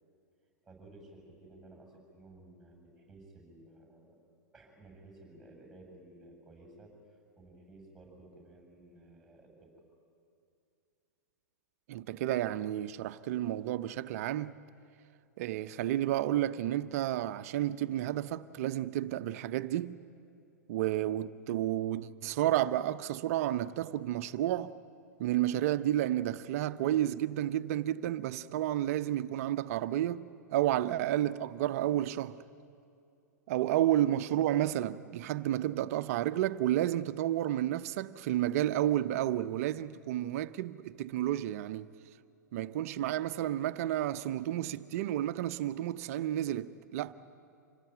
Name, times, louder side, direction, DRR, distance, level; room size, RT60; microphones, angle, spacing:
voice 1, 0.6-4.2 4.5-9.7 47.0-47.1, right 2 dB, 5° right, 7.3 m, -55 dB
voice 2, 11.9-14.6 15.4-20.0 20.7-24.7 25.2-32.4 33.5-41.9 42.5-47.1, right 13 dB, 55° right, 0.7 m, -31 dB
26.5 x 19.0 x 9.2 m
hypercardioid pair, 105°, 10 cm